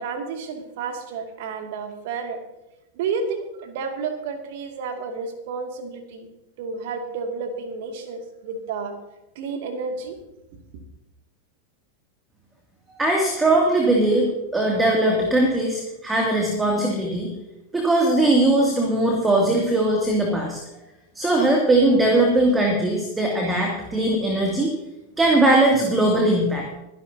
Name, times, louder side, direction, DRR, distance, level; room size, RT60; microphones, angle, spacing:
voice 1, 0.0-2.4 3.0-6.3 6.6-9.0 9.3-10.2, right 5 dB, 50° right, 4 dB, 2.5 m, -31 dB
voice 2, 13.0-17.3 17.7-20.6 21.2-24.7 25.2-26.7, right 1 dB, 10° right, 0 dB, 2.7 m, -20 dB
24.0 x 11.0 x 2.9 m, 0.92 s
figure-of-eight pair, 90°, 0 cm